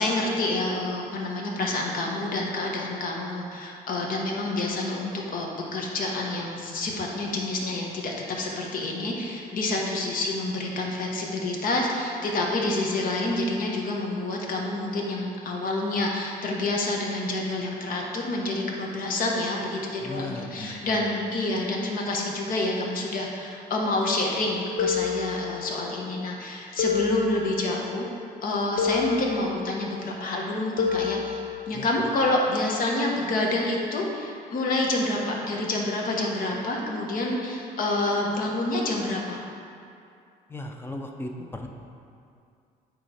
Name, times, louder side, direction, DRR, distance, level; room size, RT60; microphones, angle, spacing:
voice 1, 0.0-28.1 28.4-31.4 31.7-39.4, left 2 dB, 55° left, -1 dB, 1.1 m, -28 dB
voice 2, 20.0-21.1 31.7-31.9 40.5-41.7, left 1 dB, 15° left, 3 dB, 0.6 m, -37 dB
sound 1, 24.8-26.0 26.8-28.0 28.8-29.9 30.8-32.0, left 7 dB, 85° left, 0.7 m, -29 dB
8.5 x 3.2 x 4.9 m, 2.4 s
cardioid pair, 110°, 17 cm